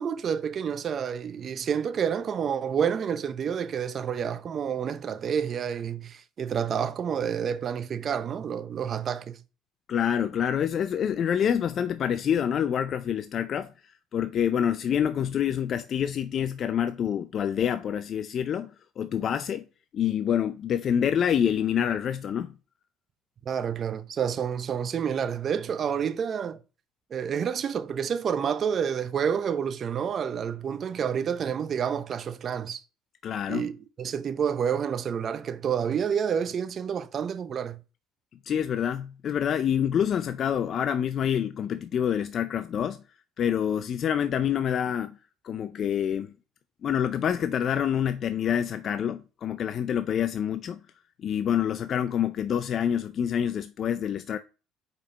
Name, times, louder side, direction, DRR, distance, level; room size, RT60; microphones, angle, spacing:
voice 1, 0.0-9.4 23.5-26.6 27.1-32.8 33.5-37.8, right 7 dB, 45° right, 0.6 m, -29 dB
voice 2, 9.9-13.7 14.1-19.6 19.9-22.5 33.2-33.7 38.5-43.0 43.4-45.2 45.4-46.3 46.8-50.8 51.2-54.4, left 9 dB, 50° left, 0.4 m, -27 dB
5.2 x 4.5 x 5.3 m
supercardioid pair, 95°, 0 cm